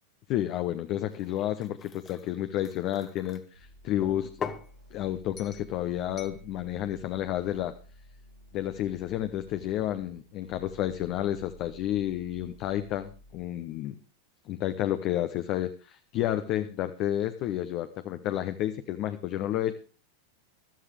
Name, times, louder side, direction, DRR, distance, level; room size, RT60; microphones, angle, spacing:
voice 1, 0.3-4.3 4.9-7.8 8.5-13.9 14.5-19.7, left 12 dB, 40° left, 10 dB, 0.8 m, -31 dB
sound 1, 1.1-3.4 4.0-4.7 5.4-5.7 6.2-6.4, left 6 dB, 25° left, 1.1 m, -41 dB
sound 2, 3.5-13.4, right 2 dB, 75° right, 5.7 m, -53 dB
15.0 x 13.0 x 3.3 m, 0.37 s
figure-of-eight pair, 90°, 0 cm